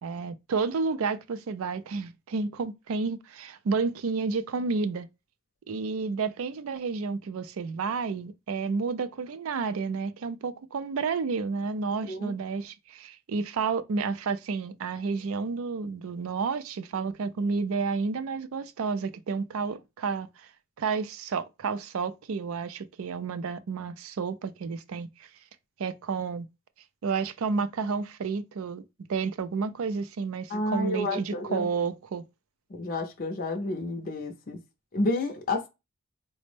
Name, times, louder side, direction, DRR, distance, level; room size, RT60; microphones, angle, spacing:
voice 1, 0.0-5.1 5.7-20.5 20.8-25.3 25.8-26.5 27.0-28.8 29.1-32.2, right 4 dB, 85° right, 0.4 m, -31 dB
voice 2, 30.5-31.7 32.7-34.6 34.9-35.7, left 2 dB, 45° left, 0.5 m, -30 dB
4.1 x 2.0 x 3.2 m
head